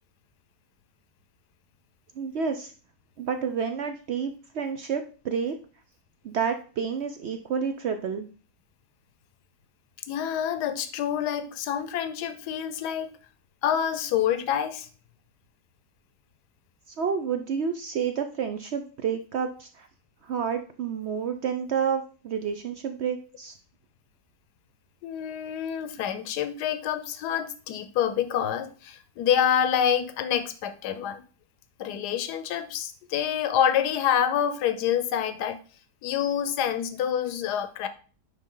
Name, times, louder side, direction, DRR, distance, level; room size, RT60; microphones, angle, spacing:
voice 1, 2.2-2.7 3.2-5.5 6.2-8.3 17.0-19.9 20.2-23.5, right 6 dB, 75° right, 7 dB, 0.6 m, -29 dB
voice 2, 10.1-13.1 13.6-14.9 25.0-31.2 31.8-35.6 36.0-37.9, left 9 dB, 80° left, 11 dB, 1.3 m, -27 dB
9.9 x 3.6 x 3.8 m, 0.38 s
omnidirectional pair, 1.7 m